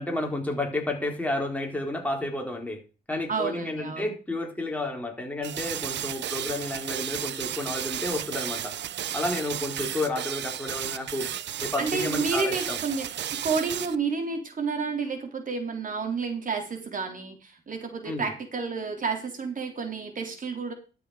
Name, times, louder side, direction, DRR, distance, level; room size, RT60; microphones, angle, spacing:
voice 1, 0.0-2.8 3.1-8.8 9.1-11.3 11.6-12.8 18.0-18.3, left 2 dB, 5° left, 1 dB, 4.2 m, -31 dB
voice 2, 3.3-4.1 11.8-13.1 13.4-20.7, right 4 dB, 40° right, 4 dB, 3.5 m, -30 dB
sound 1, 5.4-14.0, right 11 dB, 65° right, 0.7 m, -33 dB
12.5 x 7.2 x 5.0 m, 0.33 s
cardioid pair, 90°, 20 cm